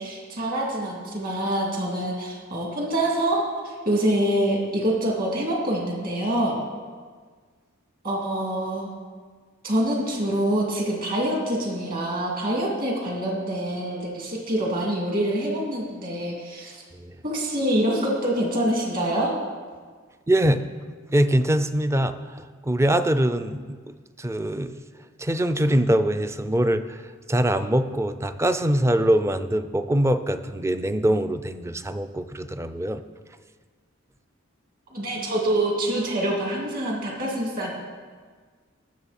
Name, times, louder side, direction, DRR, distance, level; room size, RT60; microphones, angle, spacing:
voice 1, 0.0-3.4 3.6-6.6 8.0-8.9 9.6-16.8 17.2-19.3 34.9-37.7, right 1 dB, 45° right, -2 dB, 2.6 m, -25 dB
voice 2, 20.3-20.7 21.1-24.8 25.2-27.0 27.3-33.0, right 1 dB, 15° right, 10 dB, 0.4 m, -23 dB
19.5 x 7.1 x 4.3 m, 1.6 s
head